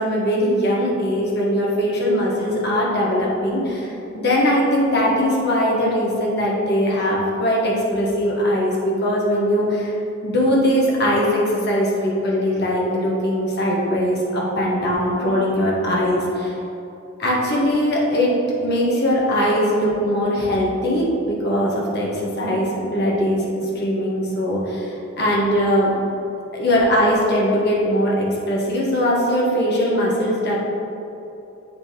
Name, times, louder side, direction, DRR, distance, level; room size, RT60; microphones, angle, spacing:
voice 1, 0.0-10.0 10.2-16.5 17.2-23.4 23.7-25.9 26.5-30.6, equal, 55° left, -4 dB, 1.4 m, -20 dB
8.1 x 3.8 x 4.7 m, 2.9 s
head